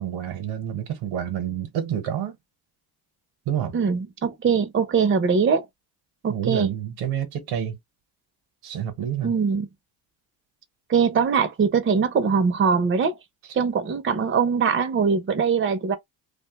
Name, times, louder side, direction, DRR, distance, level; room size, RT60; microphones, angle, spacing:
voice 1, 0.0-2.4 3.5-3.8 6.3-7.8 8.6-9.3 13.4-13.6, right 9 dB, 80° right, 0.9 m, -28 dB
voice 2, 3.7-5.6 6.2-6.7 9.2-9.7 10.9-13.1 13.6-16.0, right 6 dB, 25° right, 0.6 m, -22 dB
2.5 x 2.3 x 3.3 m
supercardioid pair, 75°, 48 cm